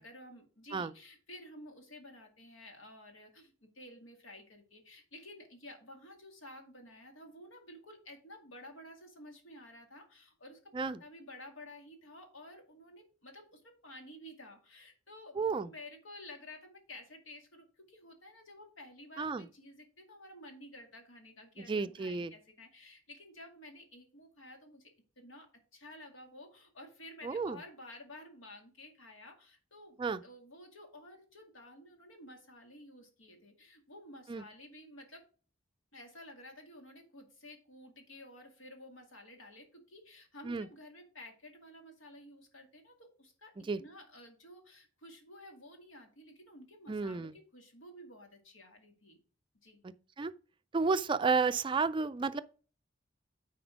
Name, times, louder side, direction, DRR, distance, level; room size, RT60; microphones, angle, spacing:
voice 1, 0.0-10.7 11.0-24.9 25.2-35.2 35.9-49.2 49.6-49.8, left 1 dB, 85° left, 2.2 m, -52 dB
voice 2, 15.4-15.7 19.2-19.4 21.7-22.3 27.2-27.6 30.0-30.2 34.3-34.4 40.4-40.7 43.7-43.8 46.9-47.3 50.2-50.3 50.7-52.4, right 4 dB, 25° right, 0.3 m, -31 dB
9.5 x 4.3 x 5.1 m
head